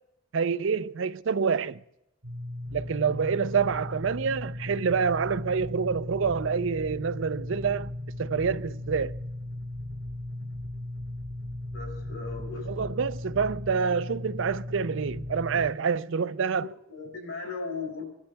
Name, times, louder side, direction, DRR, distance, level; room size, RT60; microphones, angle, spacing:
voice 1, 0.3-1.8 2.7-7.9 8.2-9.1 12.7-16.7, right 6 dB, 65° right, 0.5 m, -27 dB
sound 1, 2.2-15.7, left 1 dB, 90° right, 1.9 m, -37 dB
voice 2, 11.7-12.7 16.9-18.0, left 4 dB, 75° left, 5.6 m, -37 dB
26.0 x 11.5 x 3.4 m
head